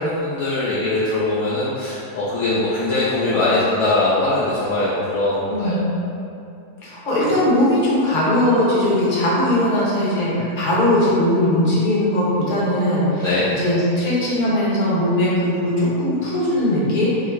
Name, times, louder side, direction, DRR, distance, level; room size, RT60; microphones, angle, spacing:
voice 1, 0.0-5.8 13.2-13.5, left 2 dB, 65° left, -9 dB, 0.9 m, -21 dB
voice 2, 6.8-17.1, left 1 dB, 35° left, -7 dB, 1.0 m, -19 dB
4.6 x 2.0 x 4.5 m, 2.7 s
omnidirectional pair, 1.6 m